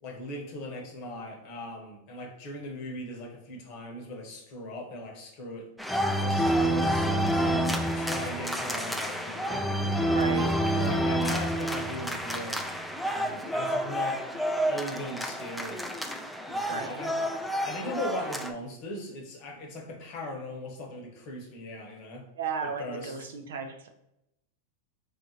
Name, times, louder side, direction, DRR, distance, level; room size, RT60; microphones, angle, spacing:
voice 1, 0.0-5.7 6.2-7.4 7.8-9.7 10.1-12.6 13.1-14.2 14.7-15.9 16.5-17.2 17.6-22.3 22.6-23.3, left 1 dB, 50° left, 1 dB, 0.9 m, -39 dB
sound 1, 5.8-18.5, right 1 dB, ahead, 0.4 m, -28 dB
voice 2, 10.1-10.5 16.7-17.0 22.4-23.9, right 5 dB, 75° right, 5 dB, 0.4 m, -34 dB
3.7 x 2.5 x 2.8 m, 0.85 s
hypercardioid pair, 100°, 0 cm